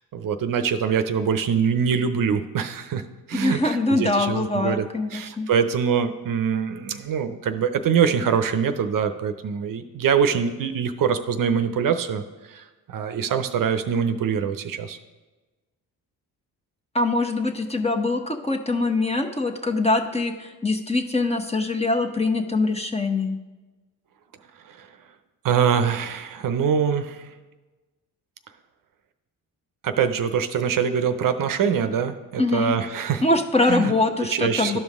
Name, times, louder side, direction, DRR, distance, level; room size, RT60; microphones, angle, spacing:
voice 1, 0.1-3.0 3.3-12.6 12.9-15.0 24.7-24.9 25.4-27.3 29.8-33.2 33.7-33.9 34.3-34.8, right 7 dB, 60° right, 9 dB, 0.7 m, -24 dB
voice 2, 3.3-5.5 16.9-23.4 32.4-32.7 33.2-34.8, left 2 dB, 15° left, 5 dB, 0.9 m, -23 dB
12.0 x 5.2 x 3.6 m, 1.2 s
supercardioid pair, 65°, 38 cm